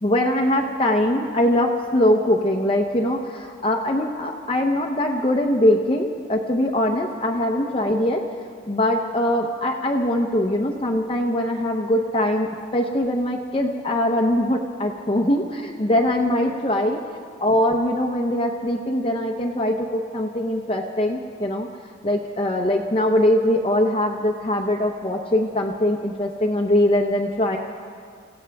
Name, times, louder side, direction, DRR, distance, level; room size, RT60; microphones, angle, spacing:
voice 1, 0.0-8.2 8.7-17.0 17.4-21.7 22.0-27.6, left 1 dB, 25° left, 2 dB, 0.7 m, -22 dB
25.5 x 16.0 x 3.4 m, 2.2 s
head